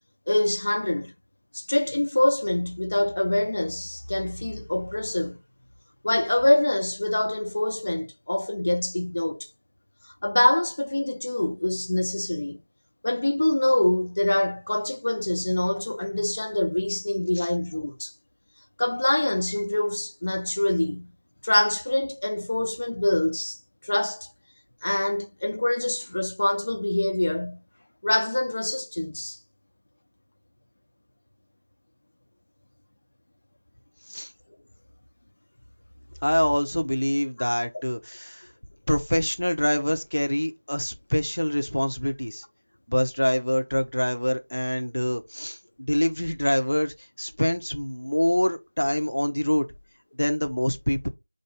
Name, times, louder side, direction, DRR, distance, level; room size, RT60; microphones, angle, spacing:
voice 1, 0.3-1.1 1.5-5.4 6.0-9.5 10.2-12.6 13.0-18.1 18.8-21.1 21.4-23.6 23.8-24.3 24.8-27.6 28.0-29.4 37.4-37.5, left 1 dB, 30° left, 0.5 m, -25 dB
voice 2, 36.2-38.5 38.9-42.4 42.9-49.7 50.1-51.1, equal, 65° left, 0.8 m, -25 dB
4.9 x 2.6 x 3.5 m
figure-of-eight pair, 175°, 0 cm